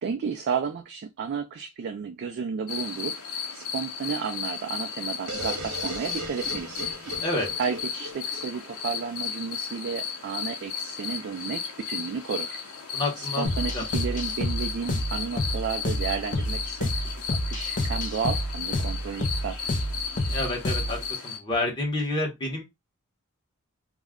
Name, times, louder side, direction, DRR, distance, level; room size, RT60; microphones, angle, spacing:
voice 1, 0.0-6.9 7.6-12.6 13.2-16.9 17.4-19.7, right 6 dB, 50° right, 0.3 m, -32 dB
sound 1, 2.7-21.4, left 6 dB, 80° left, 0.8 m, -34 dB
sound 2, 5.3-9.1, right 2 dB, 70° right, 0.8 m, -38 dB
voice 2, 12.9-13.4 13.7-13.8 20.3-22.6, left 2 dB, 20° left, 0.8 m, -29 dB
sound 3, 13.4-21.1, left 1 dB, 35° left, 0.4 m, -29 dB
2.3 x 2.1 x 3.4 m
head